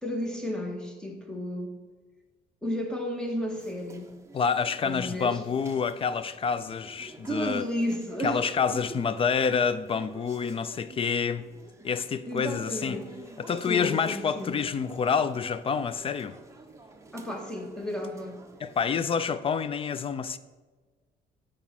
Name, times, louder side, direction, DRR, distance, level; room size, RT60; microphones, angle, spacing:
voice 1, 0.0-1.8 2.6-4.1 4.8-5.4 7.3-8.5 12.3-13.2 13.7-14.6 17.1-18.4, equal, 5° left, 1.8 m, -32 dB
sound 1, 3.5-18.9, right 3 dB, 15° right, 1.0 m, -50 dB
voice 2, 4.3-7.6 8.2-11.4 11.8-13.0 13.4-16.4 18.6-20.4, left 6 dB, 35° left, 0.5 m, -28 dB
9.7 x 4.9 x 5.9 m
cardioid pair, 110°, 17 cm